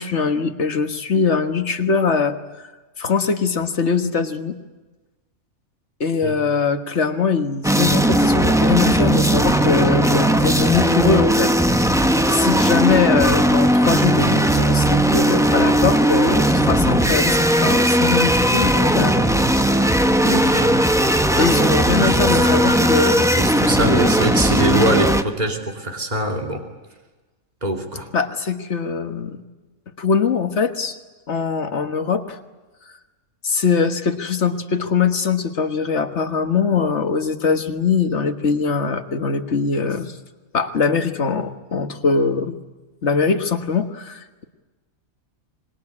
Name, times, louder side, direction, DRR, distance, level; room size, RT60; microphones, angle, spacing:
voice 1, 0.0-2.4 3.0-4.6 6.0-11.5 12.3-19.3 21.4-23.2 28.1-29.4 30.0-30.9 31.3-32.4 33.4-40.2 40.5-42.6 43.0-44.4, left 5 dB, 55° left, 7 dB, 1.7 m, -21 dB
sound 1, 7.6-25.2, right 1 dB, 5° right, 0.8 m, -17 dB
voice 2, 20.2-20.8 21.3-26.6 27.6-28.1, right 1 dB, 30° right, 2 dB, 3.0 m, -24 dB
26.0 x 20.5 x 9.8 m, 1.2 s
omnidirectional pair, 1.5 m